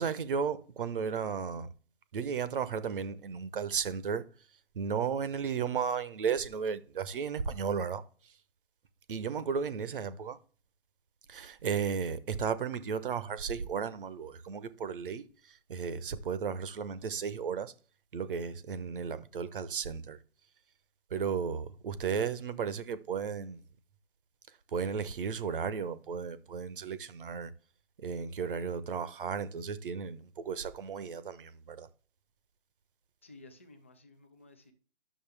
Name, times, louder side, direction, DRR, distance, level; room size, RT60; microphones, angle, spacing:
voice 1, 0.0-1.7 2.1-4.3 4.7-8.0 9.1-10.4 11.3-17.7 18.1-20.2 21.1-23.6 24.7-27.5 28.0-31.9, right 6 dB, 55° right, 0.9 m, -34 dB
voice 2, 33.2-34.7, left 2 dB, 15° left, 0.4 m, -55 dB
11.0 x 6.5 x 3.3 m
figure-of-eight pair, 145°, 33 cm